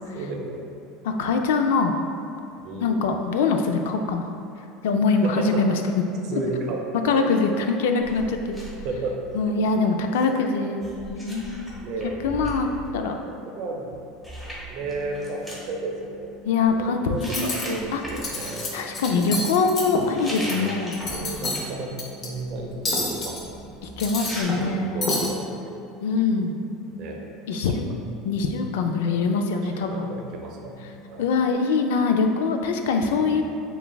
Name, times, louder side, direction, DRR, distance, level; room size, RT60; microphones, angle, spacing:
voice 1, 0.1-1.0 2.6-3.1 5.2-6.0 6.2-7.3 8.8-9.2 9.4-9.6 10.3-10.4 10.6-10.8 11.8-12.2 13.3-14.0 14.7-16.3 16.8-19.1 20.3-21.9 22.2-23.8 24.3-25.8 27.0-27.2 27.5-27.8 29.1-29.3 29.6-31.3 33.0-33.4, right 3 dB, 60° right, 1 dB, 0.6 m, -34 dB
voice 2, 1.0-1.9 2.8-4.2 4.8-6.0 6.3-6.4 7.0-8.6 9.3-10.8 11.1-11.7 12.2-12.7 12.9-13.2 16.5-18.0 18.7-21.0 24.0-25.0 26.0-26.6 27.5-27.9 28.2-30.1 31.2-33.4, left 4 dB, 85° left, 5 dB, 0.3 m, -23 dB
sound 1, 8.0-9.8 10.8-12.9 13.9-14.0 14.2-15.6 16.4-16.7 17.1-18.5 20.0-21.9 22.3-24.4, right 1 dB, 10° left, 1.1 m, -39 dB
sound 2, 14.8-31.5, right 1 dB, 15° right, 0.6 m, -48 dB
Cutlery silverware, 17.2-17.6 18.1-18.7 18.9-20.5 20.9-21.6 22.0-22.3 22.9-23.4 23.8-24.7 25.0-25.3, left 2 dB, 40° left, 0.7 m, -28 dB
6.7 x 2.3 x 2.3 m, 2.7 s
supercardioid pair, 120°, 0 cm